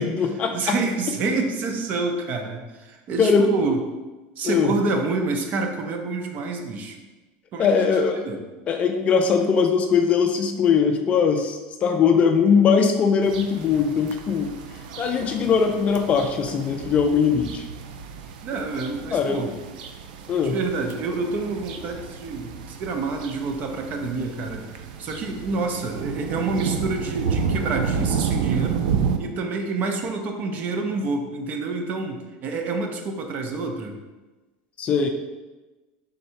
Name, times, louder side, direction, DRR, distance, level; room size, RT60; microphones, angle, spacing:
voice 1, 0.0-0.8 3.2-3.5 4.4-4.7 7.6-8.2 8.7-14.5 15.0-17.6 19.1-19.4 20.3-20.6 34.8-35.1, left 6 dB, 30° left, 5 dB, 0.3 m, -20 dB
voice 2, 0.5-3.8 4.4-7.0 7.5-8.4 18.4-19.5 20.4-24.6 25.0-28.9 29.2-34.0, right 3 dB, 40° right, 4 dB, 0.6 m, -28 dB
sound 1, 13.2-29.2, right 6 dB, 90° right, 0.4 m, -31 dB
3.8 x 2.6 x 4.4 m, 1.2 s
supercardioid pair, 150°, 4 cm